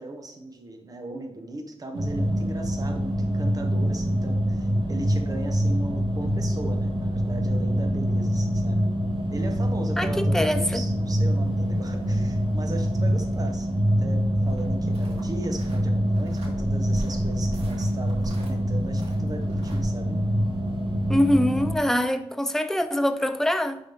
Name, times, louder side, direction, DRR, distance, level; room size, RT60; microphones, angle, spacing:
voice 1, 0.0-8.8 9.3-20.2, right 2 dB, 35° right, 1.0 m, -38 dB
sound 1, 1.9-21.7, equal, 55° right, 1.8 m, -25 dB
voice 2, 10.0-10.8 21.1-23.8, left 1 dB, 5° left, 0.5 m, -24 dB
sound 2, 14.4-19.8, right 1 dB, 80° right, 2.0 m, -40 dB
10.5 x 3.9 x 3.5 m
wide cardioid pair, 145°, 10 cm